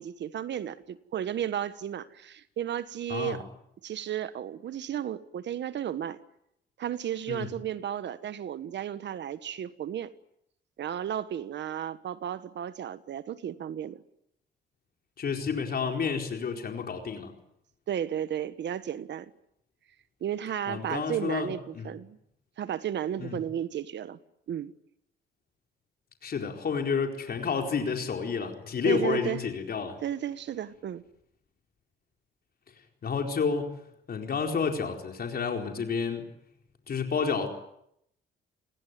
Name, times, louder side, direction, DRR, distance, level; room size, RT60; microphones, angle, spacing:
voice 1, 0.0-3.4 3.8-6.2 6.8-10.1 10.8-14.0 17.9-19.3 20.2-22.2 22.6-24.2 24.5-24.7 28.8-29.4 30.0-31.0, right 10 dB, 65° right, 1.4 m, -33 dB
voice 2, 3.1-3.4 7.3-7.5 15.2-17.3 20.7-21.9 23.2-23.4 26.2-30.0 33.0-33.7 34.1-36.3 36.9-37.5, left 5 dB, 50° left, 4.4 m, -30 dB
28.5 x 21.5 x 9.3 m
cardioid pair, 90°, 20 cm